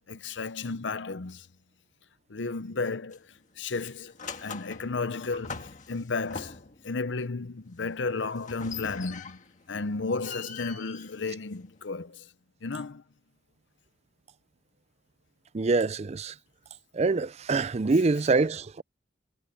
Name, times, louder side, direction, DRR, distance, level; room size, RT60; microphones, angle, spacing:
voice 1, 0.1-1.5 2.3-3.2 3.6-4.1 4.4-6.6 6.8-9.4 9.7-12.2 12.6-13.0, left 4 dB, 70° left, 0.8 m, -33 dB
sound 1, 3.1-3.4 3.7-6.9 8.4-9.6 10.0-11.9, left 5 dB, 40° left, 1.8 m, -42 dB
voice 2, 15.5-16.3 16.9-18.8, right 3 dB, 35° right, 0.4 m, -25 dB
head